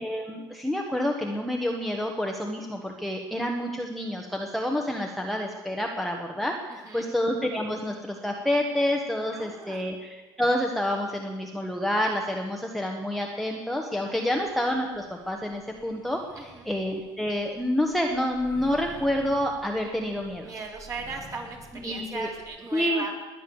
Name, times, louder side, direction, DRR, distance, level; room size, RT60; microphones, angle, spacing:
voice 1, 0.0-20.5 21.7-22.3 22.7-23.0, left 1 dB, ahead, 1 dB, 1.4 m, -28 dB
voice 2, 6.7-7.1 9.3-9.9 14.1-14.4 16.4-16.7 20.4-23.2, right 3 dB, 35° right, 0 dB, 3.9 m, -38 dB
sound 1, 14.3-22.4, right 3 dB, 60° right, 6.2 m, -50 dB
19.5 x 9.7 x 7.1 m, 1.3 s
cardioid pair, 130°, 10 cm